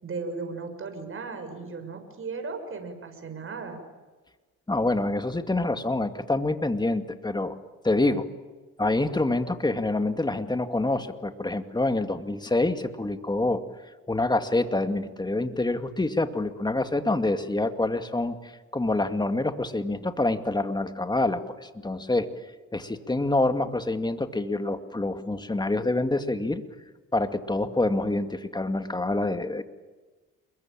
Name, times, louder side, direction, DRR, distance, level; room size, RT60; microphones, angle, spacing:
voice 1, 0.0-3.8, right 4 dB, 45° right, 6 dB, 6.6 m, -36 dB
voice 2, 4.7-7.6 7.8-8.3 8.8-13.6 14.1-22.3 22.7-26.6 27.1-29.6, left 2 dB, 15° left, 8 dB, 2.3 m, -26 dB
28.0 x 22.0 x 9.0 m, 1.3 s
cardioid pair, 90°, 30 cm